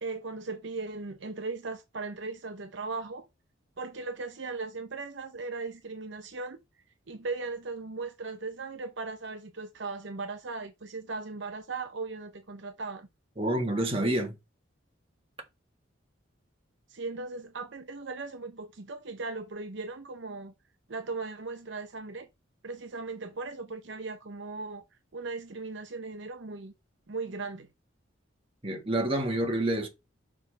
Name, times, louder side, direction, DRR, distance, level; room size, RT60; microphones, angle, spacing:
voice 1, 0.0-3.3 3.8-6.6 7.1-13.1 16.9-20.5 20.9-22.3 22.6-24.8 25.1-26.7 27.1-27.7, right 3 dB, 65° right, 0.7 m, -38 dB
voice 2, 13.4-14.3 28.6-29.9, right 1 dB, 30° right, 1.7 m, -28 dB
6.1 x 3.7 x 5.7 m
head